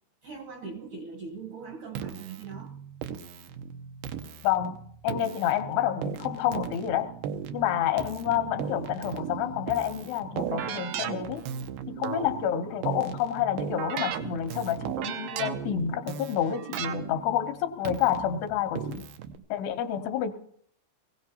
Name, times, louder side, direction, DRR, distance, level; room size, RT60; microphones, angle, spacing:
voice 1, 0.2-2.7 19.3-19.4, right 5 dB, 70° right, 1 dB, 1.9 m, -41 dB
Keyboard (musical), 1.9-19.4, right 8 dB, 90° right, 2.0 m, -36 dB
voice 2, 4.4-7.1 7.5-11.4 11.9-19.1 19.5-20.3, left 10 dB, 75° left, 6 dB, 2.7 m, -29 dB
22.5 x 16.5 x 2.8 m, 0.65 s
omnidirectional pair, 5.0 m